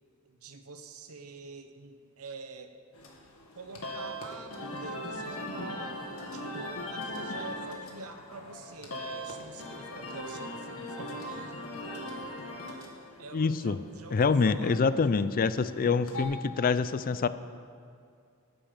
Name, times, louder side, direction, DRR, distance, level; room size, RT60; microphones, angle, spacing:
voice 1, 0.3-2.8 3.5-6.0 6.3-12.4 13.2-15.2, right 3 dB, 85° right, 8 dB, 0.9 m, -46 dB
sound 1, 2.9-16.2, left 1 dB, 75° left, 1.7 m, -40 dB
voice 2, 13.3-13.8 14.1-17.3, left 5 dB, 40° left, 14 dB, 0.4 m, -26 dB
9.7 x 8.9 x 7.2 m, 2.3 s
head